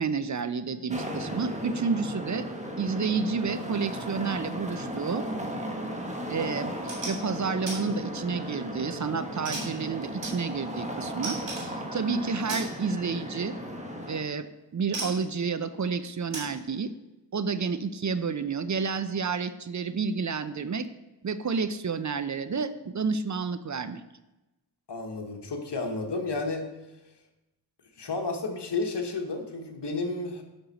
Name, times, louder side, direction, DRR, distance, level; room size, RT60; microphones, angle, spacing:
voice 1, 0.0-2.5 2.8-5.3 6.3-6.7 7.1-13.6 14.1-14.5 14.7-16.9 17.3-20.9 21.2-24.0, right 5 dB, 45° right, 12 dB, 0.5 m, -30 dB
sound 1, 0.9-14.2, equal, 15° right, 1.3 m, -36 dB
sound 2, 6.9-7.2 7.7-7.8 8.2-8.7 9.4-10.8 11.2-11.7 12.5-12.7 14.0-14.1 14.9-15.3 16.3-16.5, right 2 dB, 85° right, 2.6 m, -36 dB
voice 2, 24.9-26.7 28.0-30.4, left 3 dB, 70° left, 4 dB, 1.2 m, -32 dB
7.9 x 6.2 x 4.1 m, 0.99 s
cardioid pair, 50°, 42 cm